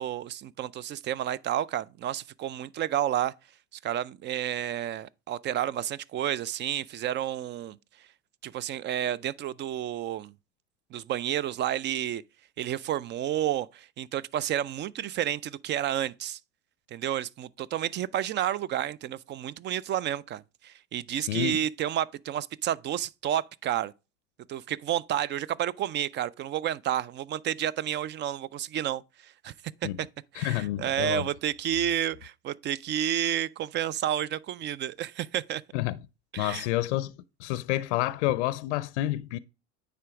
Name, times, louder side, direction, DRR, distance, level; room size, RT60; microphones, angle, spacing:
voice 1, 0.0-3.3 3.8-7.8 8.4-10.3 10.9-12.2 12.6-16.4 16.9-23.9 24.5-29.5 29.8-30.1 30.3-35.6 36.3-36.7, right 11 dB, 35° right, 0.4 m, -30 dB
voice 2, 21.1-21.6 29.8-30.0 30.4-31.3 35.7-36.0 36.4-37.1 37.4-39.4, left 16 dB, 80° left, 0.5 m, -29 dB
9.4 x 3.5 x 4.9 m
supercardioid pair, 95°, 34 cm